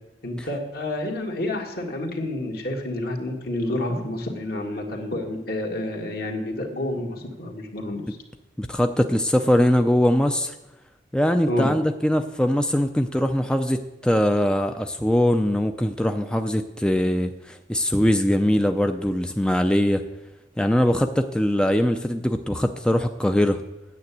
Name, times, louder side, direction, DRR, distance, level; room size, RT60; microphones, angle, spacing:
voice 1, 0.2-8.0 11.5-11.7, left 1 dB, 60° left, 1 dB, 1.9 m, -29 dB
voice 2, 8.6-10.5 11.1-20.0 20.6-23.6, left 1 dB, 5° left, 6 dB, 0.4 m, -22 dB
9.4 x 6.9 x 8.5 m, 0.98 s
head